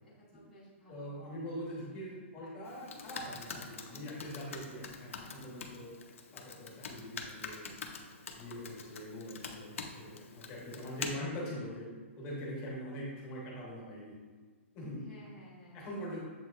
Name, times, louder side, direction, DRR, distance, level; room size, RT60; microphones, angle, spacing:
voice 1, 0.0-1.1 10.6-11.3 14.9-15.9, equal, ahead, -13 dB, 0.6 m, -56 dB
voice 2, 0.9-5.9 6.3-7.9 8.3-11.9 12.2-14.2 14.7-15.1 15.7-16.2, equal, 20° left, -4 dB, 0.9 m, -43 dB
Computer keyboard, 2.6-11.1, left 5 dB, 75° left, 0.5 m, -45 dB
7.3 x 2.8 x 2.3 m, 1.5 s
hypercardioid pair, 175°, 7 cm